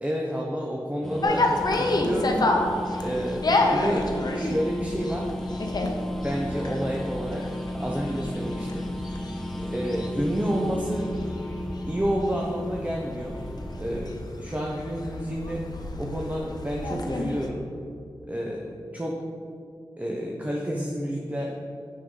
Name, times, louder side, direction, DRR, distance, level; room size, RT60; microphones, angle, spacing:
voice 1, 0.0-2.5 3.0-4.1 4.3-5.3 6.2-7.4 7.7-8.9 9.6-11.1 11.9-13.4 13.8-15.6 16.0-17.6 18.3-19.2 20.0-21.5, equal, 20° right, -2 dB, 0.8 m, -29 dB
sound 1, 1.0-13.8, left 1 dB, 5° left, 0.4 m, -34 dB
sound 2, 1.2-17.5, left 2 dB, 55° left, 0.7 m, -30 dB
6.5 x 5.6 x 3.8 m, 2.4 s
cardioid pair, 45°, 8 cm